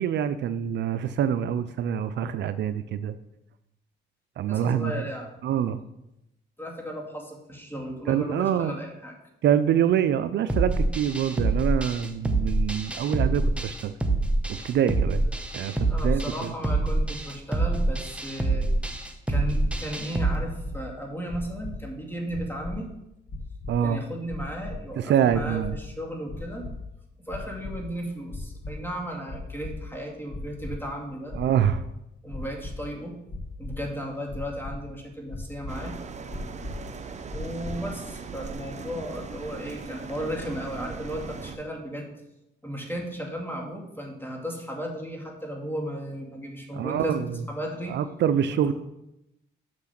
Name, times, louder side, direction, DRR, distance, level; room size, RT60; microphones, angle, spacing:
voice 1, 0.0-3.1 4.4-5.1 5.4-5.8 8.1-8.8 9.4-13.9 14.5-15.2 15.5-16.5 23.7-24.0 25.0-25.8 31.3-31.8 46.7-47.3 47.9-48.7, right 9 dB, 65° right, 12 dB, 0.5 m, -25 dB
voice 2, 4.5-5.3 6.6-9.1 15.9-18.7 19.3-22.9 23.8-26.7 27.3-31.3 32.2-33.2 33.6-35.9 37.3-42.1 42.6-47.9 48.5-48.7, equal, 10° left, 1 dB, 2.2 m, -35 dB
sound 1, 10.5-20.4, right 2 dB, 5° right, 0.9 m, -26 dB
sound 2, 19.6-19.7 20.3-20.7 21.3-21.7 22.3-22.7 23.3-23.7 24.3-24.7 25.3-25.7 26.3-26.7 27.3-27.7 28.3-28.7 29.3-29.7 30.3-30.7 31.3-31.7 32.3-32.7 33.3-33.7 34.3-34.7 35.3-35.7 36.3-36.7 37.3-37.7, left 2 dB, 40° left, 1.3 m, -37 dB
sound 3, 35.7-41.6, right 4 dB, 35° right, 0.8 m, -39 dB
6.6 x 6.2 x 5.8 m, 0.87 s
cardioid pair, 90°, 20 cm